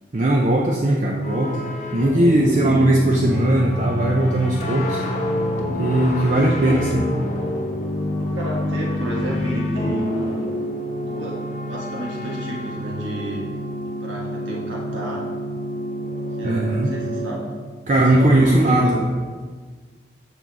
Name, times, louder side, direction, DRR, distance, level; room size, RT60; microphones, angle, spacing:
voice 1, 0.1-5.0 5.8-7.0 16.4-16.9 17.9-19.0, right 1 dB, 40° right, -1 dB, 0.5 m, -19 dB
sound 1, 1.2-17.4 18.3-19.1, left 1 dB, 40° left, 0.9 m, -28 dB
voice 2, 6.3-6.9 8.2-10.6 11.0-13.5 14.0-15.3 16.4-17.4 18.0-19.0, right 1 dB, 80° right, -4 dB, 1.5 m, -30 dB
6.9 x 6.1 x 4.1 m, 1.5 s
head